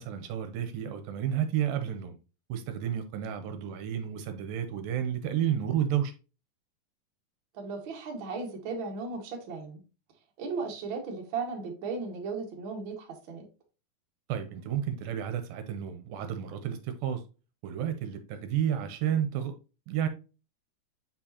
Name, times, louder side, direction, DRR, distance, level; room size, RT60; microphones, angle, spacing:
voice 1, 0.0-2.2 2.5-6.1 14.3-17.2 17.6-19.5 19.9-20.1, right 9 dB, 80° right, 2.3 m, -31 dB
voice 2, 7.5-9.8 10.4-13.4, right 4 dB, 55° right, 1.4 m, -36 dB
7.6 x 4.4 x 2.8 m
omnidirectional pair, 4.3 m